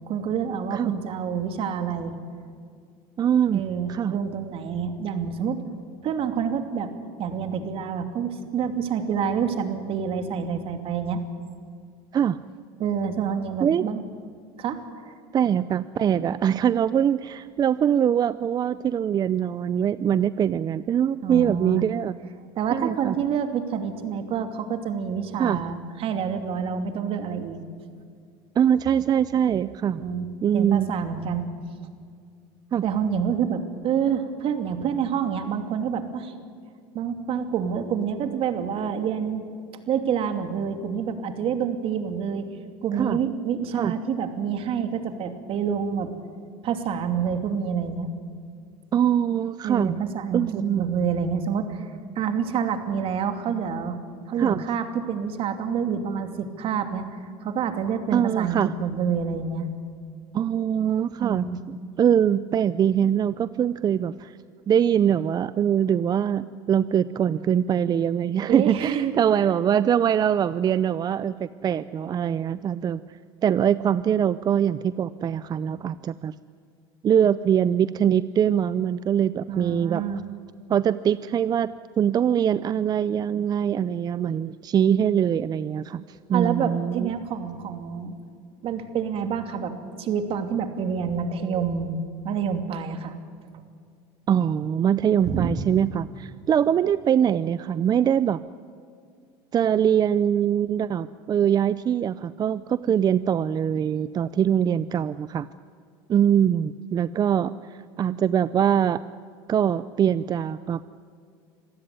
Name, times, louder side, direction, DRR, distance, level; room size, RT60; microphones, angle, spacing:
voice 1, 0.1-2.1 3.5-5.6 6.0-6.9 7.2-11.2 12.8-14.0 14.6-15.2 21.2-21.8 22.6-27.7 29.9-30.3 30.5-31.5 32.8-36.3 36.9-39.4 39.9-42.5 42.8-46.1 46.6-48.1 49.6-51.9 52.2-54.0 54.3-57.1 57.4-59.7 61.2-61.6 68.5-69.1 79.5-80.2 86.3-88.1 88.6-92.0 92.2-93.1 95.3-95.5, right 7 dB, 50° right, 7 dB, 2.7 m, -27 dB
voice 2, 3.2-4.2 12.1-12.4 13.6-13.8 15.3-22.2 22.7-23.2 25.4-25.6 28.6-30.1 30.4-30.9 32.7-32.8 43.0-43.2 43.7-43.9 48.9-50.0 50.3-50.9 54.4-54.6 58.1-58.7 60.3-64.4 64.7-73.0 73.4-76.3 77.0-80.0 80.7-86.0 86.3-87.1 94.3-98.4 99.5-105.5 106.1-107.5 108.0-109.0 109.5-110.8, right 9 dB, 35° right, 15 dB, 0.6 m, -23 dB
26.5 x 15.5 x 9.6 m, 2.2 s
supercardioid pair, 100°, 12 cm